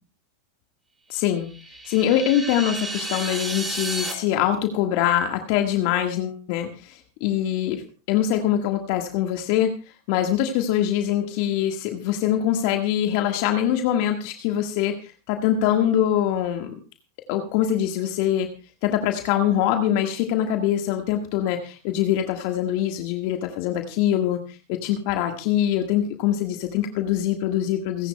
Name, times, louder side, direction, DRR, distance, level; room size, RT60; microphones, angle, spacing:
voice 1, 1.1-1.5 1.8-9.7 10.1-16.7 17.3-18.5 18.8-28.1, left 11 dB, 55° left, 5 dB, 1.5 m, -23 dB
sound 1, 1.4-4.1, right 2 dB, 15° right, 4.6 m, -32 dB
29.0 x 11.0 x 2.2 m, 0.34 s
hypercardioid pair, 95°, 0 cm